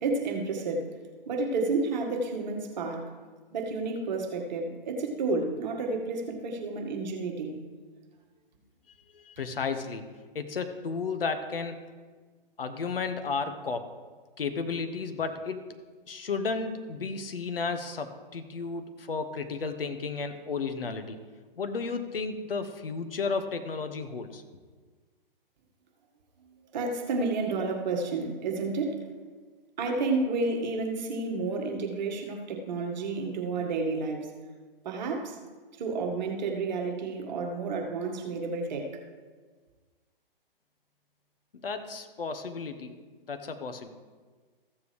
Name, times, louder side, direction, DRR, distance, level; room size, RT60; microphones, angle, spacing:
voice 1, 0.0-0.9 1.3-3.1 3.5-7.6 26.7-29.1 29.8-34.3 34.8-35.4 35.8-38.9, right 3 dB, 50° right, 2 dB, 1.7 m, -30 dB
voice 2, 9.1-10.0 10.3-11.8 12.6-13.9 14.4-15.6 16.1-21.2 21.6-24.4 41.5-42.9 43.3-43.9, left 4 dB, 75° left, 8 dB, 1.1 m, -33 dB
15.0 x 7.2 x 3.3 m, 1.4 s
figure-of-eight pair, 125°, 29 cm